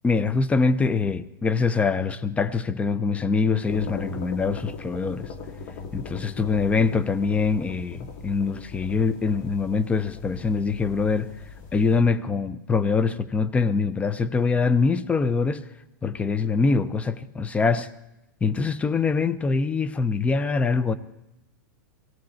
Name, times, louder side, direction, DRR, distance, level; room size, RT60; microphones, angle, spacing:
voice 1, 0.0-5.3 5.9-11.3 11.7-15.7 16.0-17.9 18.4-20.9, left 4 dB, 10° left, 0.6 m, -24 dB
sound 1, 3.6-12.0, left 4 dB, 45° left, 2.0 m, -39 dB
18.5 x 16.5 x 4.3 m
hypercardioid pair, 130°, 11 cm